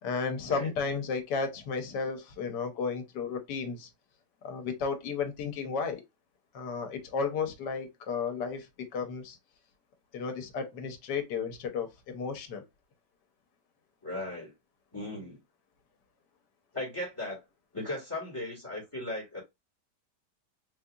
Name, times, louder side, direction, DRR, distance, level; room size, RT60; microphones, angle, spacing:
voice 1, 0.0-3.9 4.4-6.0 6.5-9.4 10.1-12.6, left 5 dB, 80° left, 1.4 m, -33 dB
voice 2, 14.0-14.5 14.9-15.4 16.7-17.4 17.7-19.4, left 2 dB, 15° left, 1.5 m, -37 dB
4.1 x 2.7 x 2.4 m
omnidirectional pair, 1.8 m